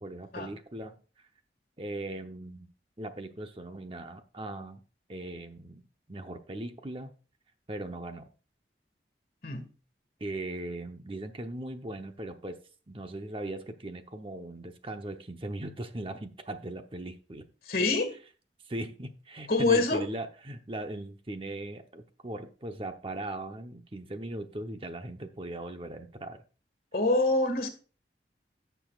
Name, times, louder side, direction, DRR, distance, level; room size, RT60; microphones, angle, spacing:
voice 1, 0.0-1.0 1.8-2.7 3.0-4.8 5.1-5.8 6.1-7.1 7.7-8.3 10.2-12.6 12.9-17.5 18.7-26.4, right 1 dB, 30° right, 6 dB, 0.8 m, -39 dB
voice 2, 17.7-18.1 19.5-20.0 26.9-27.7, left 2 dB, 55° left, 8 dB, 1.9 m, -25 dB
16.0 x 7.0 x 2.4 m, 0.36 s
head